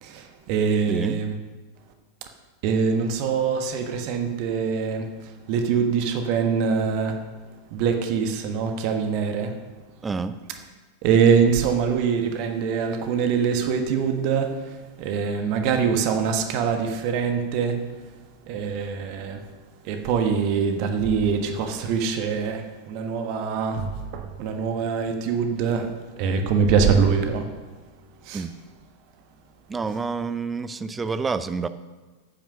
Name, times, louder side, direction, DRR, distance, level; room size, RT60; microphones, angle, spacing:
voice 1, 0.0-1.3 2.6-7.2 7.7-9.5 11.0-17.8 18.5-19.4 19.8-25.9 26.1-27.5 28.2-28.4, right 6 dB, 45° right, 1.3 m, -24 dB
voice 2, 0.9-1.2 10.0-10.3 28.3-28.5 29.7-31.7, right 4 dB, 15° right, 0.6 m, -28 dB
10.0 x 9.3 x 6.6 m
figure-of-eight pair, 90°, 0 cm